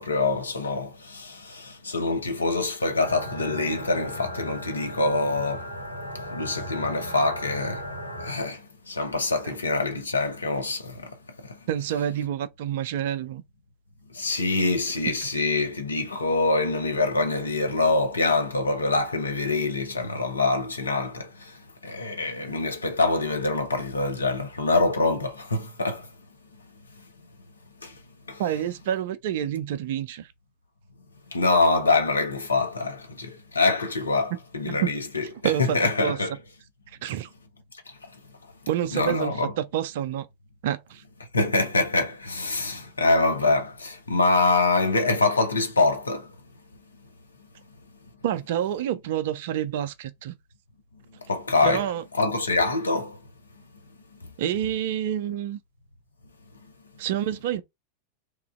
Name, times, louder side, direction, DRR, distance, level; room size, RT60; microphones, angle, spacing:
voice 1, 0.0-5.6 6.3-7.8 8.2-8.6 8.9-11.1 14.2-21.3 21.8-26.0 27.8-27.9 28.3-28.4 31.3-36.3 38.9-39.5 41.3-46.3 51.3-51.8 52.2-53.2, left 3 dB, 75° left, 0.6 m, -25 dB
sound 1, 3.0-8.3, equal, 90° right, 0.6 m, -36 dB
voice 2, 11.7-13.4 28.4-30.3 34.7-34.9 35.4-36.2 37.0-37.3 38.7-40.3 40.6-41.0 48.2-50.3 51.6-52.0 54.4-55.6 57.0-57.6, right 10 dB, 55° right, 0.3 m, -28 dB
3.0 x 2.3 x 2.4 m
figure-of-eight pair, 90°, 0 cm